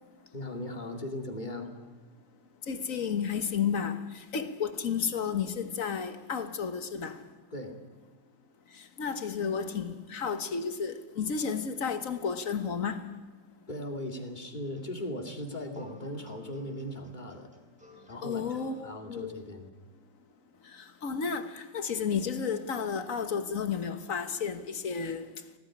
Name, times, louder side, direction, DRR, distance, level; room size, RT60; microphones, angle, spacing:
voice 1, 0.3-1.7 7.5-7.8 13.7-17.5 18.1-19.7, left 1 dB, 25° left, 2.6 m, -38 dB
voice 2, 2.7-7.2 9.0-13.1 18.2-19.4 21.0-25.3, left 6 dB, 50° left, 1.6 m, -32 dB
sound 1, 14.6-18.9, left 2 dB, 5° right, 3.2 m, -55 dB
20.0 x 17.5 x 9.9 m
omnidirectional pair, 2.0 m